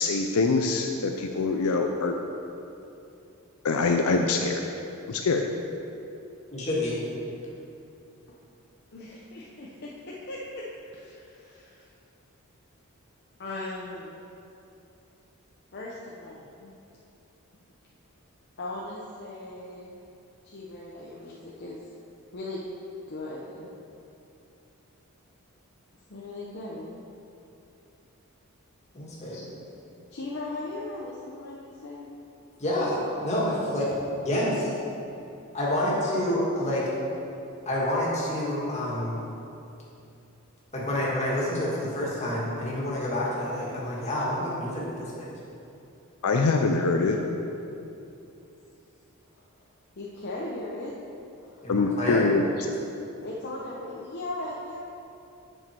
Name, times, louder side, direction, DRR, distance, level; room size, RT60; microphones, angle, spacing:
voice 1, 0.0-2.1 3.6-4.6 5.1-5.4 46.2-47.2 51.7-52.4, left 3 dB, 80° left, 3 dB, 0.5 m, -24 dB
voice 2, 6.5-7.0 28.9-29.5 32.6-33.9 34.2-34.7 35.5-36.9 37.7-39.2 40.7-45.3 51.6-52.2, left 1 dB, 30° left, -6 dB, 2.1 m, -28 dB
voice 3, 8.9-11.8 13.4-14.2 15.7-16.7 18.6-19.9 20.4-21.8 22.3-22.6 23.1-23.7 26.1-27.0 29.3-29.4 30.1-32.1 35.8-36.1 49.3-49.4 50.0-50.9 51.4-51.7 53.2-54.8, left 2 dB, 50° left, -5 dB, 0.8 m, -38 dB
8.9 x 6.5 x 4.5 m, 2.8 s
head